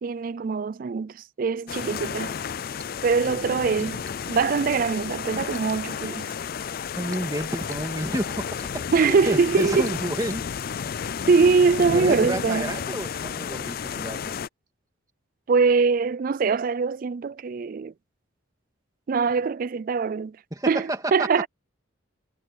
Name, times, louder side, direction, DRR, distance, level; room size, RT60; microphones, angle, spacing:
voice 1, 0.0-2.4 3.0-4.0 4.3-6.3 8.9-9.9 11.3-12.7 15.5-17.9 19.1-20.4 20.7-21.5, right 5 dB, 45° right, 0.3 m, -23 dB
sound 1, 1.7-14.5, left 7 dB, 45° left, 0.4 m, -32 dB
voice 2, 3.2-3.6 6.9-8.5 8.7-10.6 11.9-14.3 20.5-21.3, right 1 dB, 20° right, 2.4 m, -31 dB
head